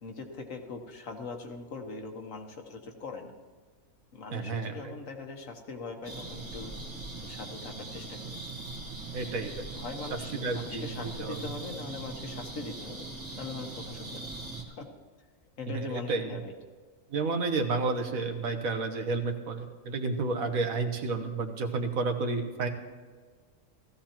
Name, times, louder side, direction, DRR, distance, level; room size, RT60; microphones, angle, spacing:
voice 1, 0.0-3.3 4.1-6.7 7.2-8.4 9.2-9.3 9.7-13.0 13.3-14.3 14.7-14.9 15.6-16.5, left 4 dB, 65° left, 4 dB, 1.5 m, -41 dB
voice 2, 4.3-4.9 9.1-9.6 10.3-11.4 15.7-16.3 17.1-22.7, right 3 dB, 75° right, 5 dB, 1.5 m, -31 dB
sound 1, 6.0-14.6, right 3 dB, 30° right, 1.5 m, -41 dB
16.0 x 14.5 x 3.0 m, 1.5 s
omnidirectional pair, 1.5 m